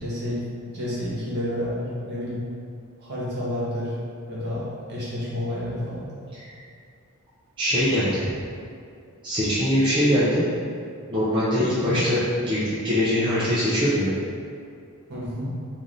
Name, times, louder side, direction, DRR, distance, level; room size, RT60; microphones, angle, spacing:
voice 1, 0.0-2.4 3.0-3.9 4.3-6.1 11.7-12.0 15.1-15.5, left 1 dB, 50° right, -8 dB, 1.1 m, -30 dB
voice 2, 7.6-8.3 9.2-10.5 11.1-14.1, equal, 20° right, -11 dB, 0.5 m, -22 dB
3.3 x 2.6 x 3.8 m, 2.4 s
head